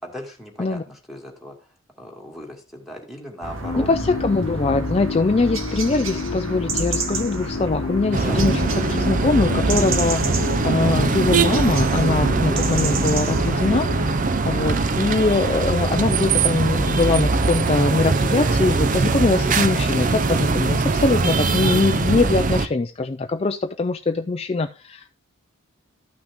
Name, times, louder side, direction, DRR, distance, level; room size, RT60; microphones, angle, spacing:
voice 1, 0.0-1.7 2.0-3.9 8.2-8.4, equal, ahead, 2.2 m, -38 dB
sound 1, 3.4-15.0, right 3 dB, 70° right, 1.4 m, -30 dB
sound 2, 3.6-14.2, left 4 dB, 85° left, 0.6 m, -30 dB
voice 2, 3.9-10.3 10.6-14.1 14.5-25.1, left 3 dB, 30° left, 0.4 m, -22 dB
sound 3, 8.1-22.7, right 3 dB, 40° right, 0.5 m, -21 dB
13.0 x 6.0 x 3.6 m
head